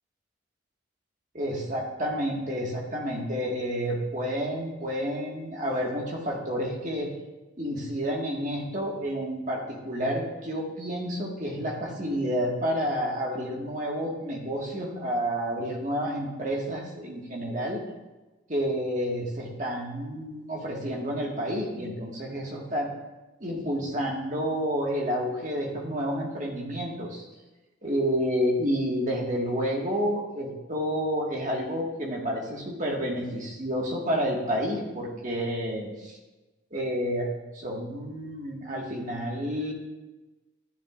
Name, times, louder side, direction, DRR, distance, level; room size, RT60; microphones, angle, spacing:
voice 1, 1.3-7.1 7.6-17.8 18.5-22.9 23.4-27.2 27.8-36.2 36.7-37.3 37.5-39.7, equal, 40° right, -2 dB, 1.8 m, -30 dB
12.0 x 10.5 x 2.5 m, 1.1 s
head